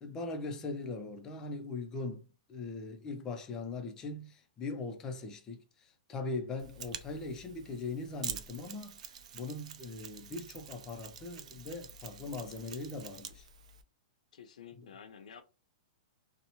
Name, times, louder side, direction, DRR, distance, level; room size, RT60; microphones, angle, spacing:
voice 1, 0.0-13.5 14.8-14.9, left 3 dB, 15° left, 0.4 m, -40 dB
Mechanisms, 6.6-13.8, right 7 dB, 65° right, 0.4 m, -46 dB
voice 2, 14.3-15.4, left 7 dB, 75° left, 0.5 m, -51 dB
2.7 x 2.0 x 2.8 m
hypercardioid pair, 160°, 4 cm